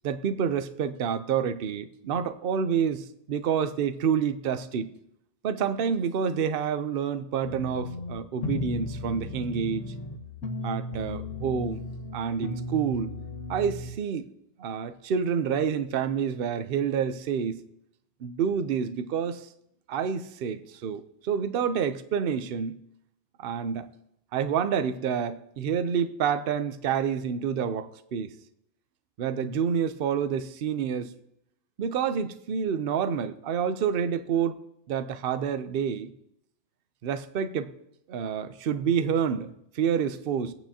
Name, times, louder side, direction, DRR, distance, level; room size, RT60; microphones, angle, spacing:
voice 1, 0.0-4.9 5.4-9.9 10.6-11.8 12.1-13.1 13.5-14.3 14.6-17.6 18.2-19.5 19.9-22.8 23.4-23.9 24.3-28.3 29.2-31.1 31.8-34.6 34.9-36.1 37.0-37.7 38.1-40.5, right 7 dB, 55° right, 0.8 m, -28 dB
sound 1, 7.4-13.9, left 2 dB, 90° left, 1.6 m, -35 dB
23.0 x 8.9 x 2.8 m
omnidirectional pair, 1.2 m